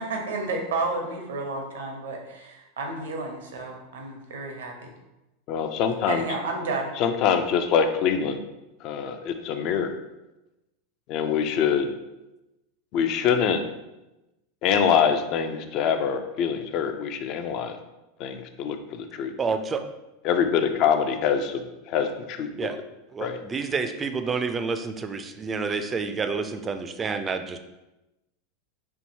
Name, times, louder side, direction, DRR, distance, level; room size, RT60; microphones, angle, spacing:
voice 1, 0.0-4.9 6.1-6.9, right 3 dB, 70° right, 2 dB, 0.7 m, -31 dB
voice 2, 5.5-6.2 7.0-8.4 8.8-9.9 11.1-11.9 12.9-13.6 14.6-17.8 18.2-19.3 20.2-22.5 23.2-23.4, left 7 dB, 50° left, 7 dB, 0.4 m, -24 dB
voice 3, 19.4-19.8 22.6-22.8 23.1-27.6, right 5 dB, 25° right, 8 dB, 0.4 m, -29 dB
4.5 x 2.7 x 2.7 m, 0.98 s
figure-of-eight pair, 85°, 0 cm